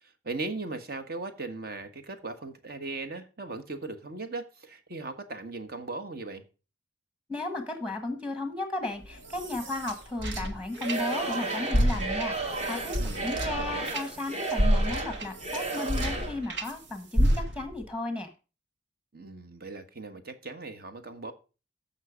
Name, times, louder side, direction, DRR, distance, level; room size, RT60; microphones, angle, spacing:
voice 1, 0.0-6.4 13.0-13.9 19.1-21.3, right 3 dB, 55° right, 1.5 m, -38 dB
voice 2, 7.3-18.3, left 2 dB, 5° right, 1.5 m, -34 dB
sound 1, 9.0-11.4 11.7-16.7 17.1-17.8, equal, 70° right, 1.5 m, -29 dB
Singing / Crowd, 10.7-16.4, right 3 dB, 35° right, 1.6 m, -33 dB
14.0 x 5.7 x 5.1 m
head